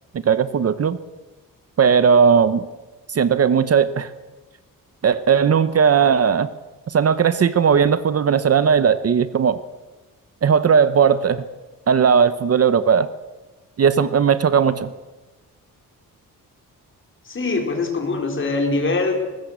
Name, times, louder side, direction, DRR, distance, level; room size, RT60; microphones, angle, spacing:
voice 1, 0.1-1.0 1.8-2.6 3.1-4.1 5.0-6.5 6.9-9.6 10.4-11.4 11.9-13.1 13.8-14.9, right 7 dB, 45° right, 14 dB, 0.8 m, -17 dB
voice 2, 17.2-19.2, left 3 dB, 35° left, 3 dB, 4.4 m, -22 dB
20.5 x 19.5 x 8.2 m, 1.2 s
wide cardioid pair, 165°, 35 cm